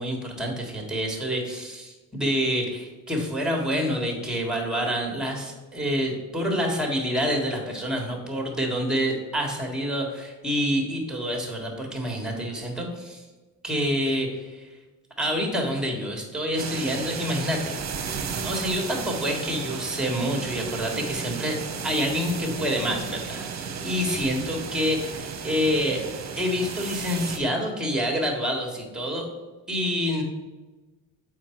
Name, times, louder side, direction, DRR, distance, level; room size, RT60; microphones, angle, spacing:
voice 1, 0.0-13.2 13.6-14.7 15.2-17.7 18.4-21.6 21.8-23.4 23.8-26.0 26.4-29.3 29.7-30.2, equal, ahead, 2 dB, 1.6 m, -27 dB
sound 1, 16.6-27.4, right 6 dB, 45° right, 0.9 m, -34 dB
7.1 x 4.7 x 4.5 m, 1.2 s
cardioid pair, 110°, 38 cm